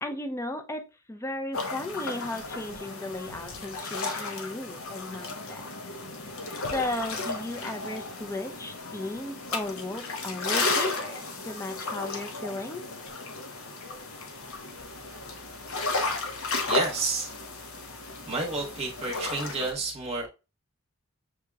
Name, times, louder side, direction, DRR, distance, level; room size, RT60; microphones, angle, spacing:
voice 1, 0.0-5.6 6.7-12.9, left 2 dB, 15° left, 0.5 m, -35 dB
sound 1, 1.5-19.7, left 3 dB, 80° left, 0.9 m, -34 dB
voice 2, 16.7-17.3 18.3-20.3, right 3 dB, 30° right, 1.0 m, -30 dB
6.5 x 2.9 x 2.3 m
head